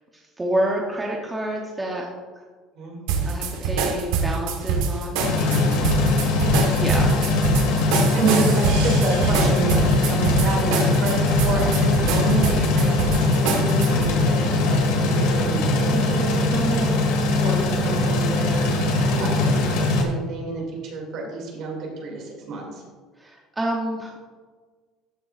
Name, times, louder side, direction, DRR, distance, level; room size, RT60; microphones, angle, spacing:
voice 1, 0.4-2.1 3.3-5.9 6.8-7.1 23.2-24.2, right 1 dB, 10° right, -2 dB, 0.8 m, -28 dB
sound 1, 3.1-14.1, right 5 dB, 90° right, 1.3 m, -25 dB
sound 2, 5.2-20.0, left 2 dB, 75° left, 1.9 m, -21 dB
voice 2, 8.1-22.8, right 3 dB, 45° right, 0 dB, 2.4 m, -29 dB
13.5 x 6.6 x 2.4 m, 1.5 s
cardioid pair, 175°, 0 cm